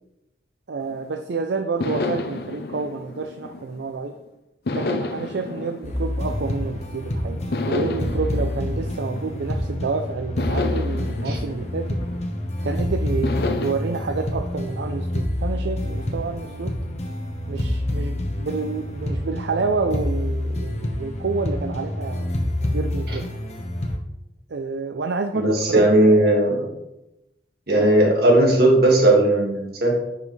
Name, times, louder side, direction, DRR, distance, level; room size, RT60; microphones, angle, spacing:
voice 1, 0.7-4.2 4.7-12.0 12.6-16.8 17.5-22.3 22.7-23.3 24.5-26.3 27.7-27.9, right 4 dB, 75° right, 6 dB, 0.5 m, -29 dB
sound 1, 0.8-1.2 1.8-4.1 4.7-6.9 7.5-9.8 10.4-12.6 13.2-13.7, left 3 dB, 55° left, 0.6 m, -30 dB
sound 2, 5.8-24.0, left 1 dB, 35° left, 1.0 m, -27 dB
voice 2, 25.3-26.7 27.7-29.9, right 1 dB, 55° right, -1 dB, 1.9 m, -17 dB
9.3 x 5.5 x 3.2 m, 0.93 s
head